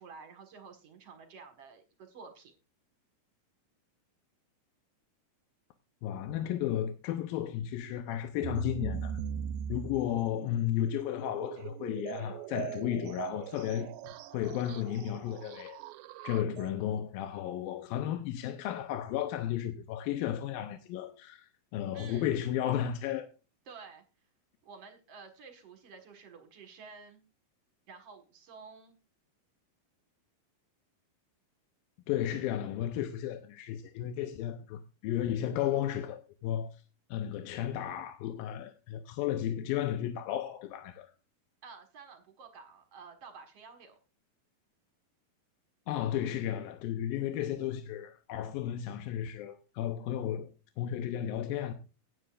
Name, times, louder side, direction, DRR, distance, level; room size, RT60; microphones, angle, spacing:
voice 1, 0.0-2.5 21.9-22.4 23.7-24.0 24.6-27.2 27.9-29.0 41.6-44.0, right 5 dB, 50° right, 2.3 m, -51 dB
voice 2, 6.0-9.2 9.7-13.9 14.3-15.8 16.2-23.3 32.1-36.8 37.1-41.1 45.9-50.5 50.8-51.7, left 11 dB, 80° left, 2.6 m, -33 dB
sound 1, 8.4-17.0, right 9 dB, 85° right, 2.5 m, -41 dB
16.5 x 9.4 x 2.5 m
omnidirectional pair, 4.3 m